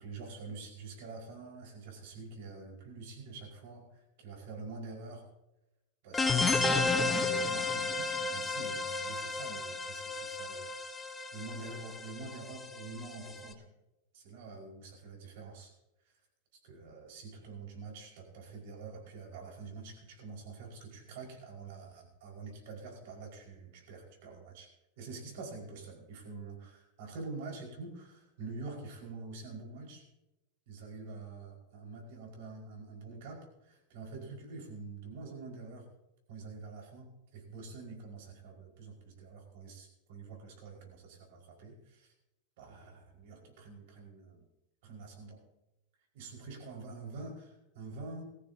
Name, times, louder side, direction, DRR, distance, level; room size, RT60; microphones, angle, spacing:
voice 1, 0.0-5.3 6.0-10.7 11.3-13.7 14.1-15.7 16.6-24.7 25.0-30.0 30.7-35.9 36.3-42.1 42.6-44.4 44.8-45.4 46.1-48.2, right 3 dB, 65° right, 0 dB, 5.3 m, -46 dB
sound 1, 6.1-13.5, left 3 dB, 15° left, 1.0 m, -32 dB
19.0 x 14.5 x 2.9 m, 0.94 s
supercardioid pair, 135°, 0 cm